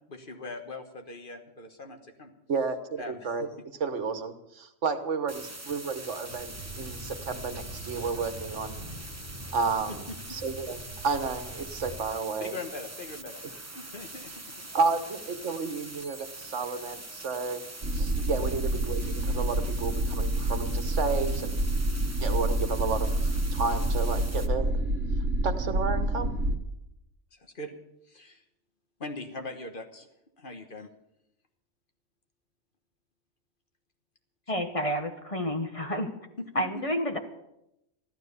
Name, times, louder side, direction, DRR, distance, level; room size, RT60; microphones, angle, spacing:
voice 1, 0.1-2.3 3.0-3.5 9.9-10.1 12.4-13.4 13.7-14.7 18.1-18.3 27.3-27.7 28.1-28.4 29.0-30.1 30.4-30.9 36.4-36.8, left 2 dB, 45° left, 5 dB, 1.5 m, -41 dB
voice 2, 2.5-3.5 3.8-8.8 9.5-10.0 10.3-10.8 11.0-12.6 14.7-17.6 17.9-21.5 22.2-24.7 25.4-26.3, right 4 dB, 75° right, 9 dB, 1.5 m, -31 dB
sound 1, 5.3-24.5, right 2 dB, 15° right, 1.0 m, -43 dB
Thunder, 6.3-12.0, right 1 dB, 10° left, 6.7 m, -43 dB
sound 2, 17.8-26.6, right 1 dB, 55° right, 1.6 m, -28 dB
voice 3, 34.5-36.1 36.5-37.2, equal, 30° left, 5 dB, 1.1 m, -29 dB
14.0 x 12.0 x 6.8 m, 0.84 s
omnidirectional pair, 1.2 m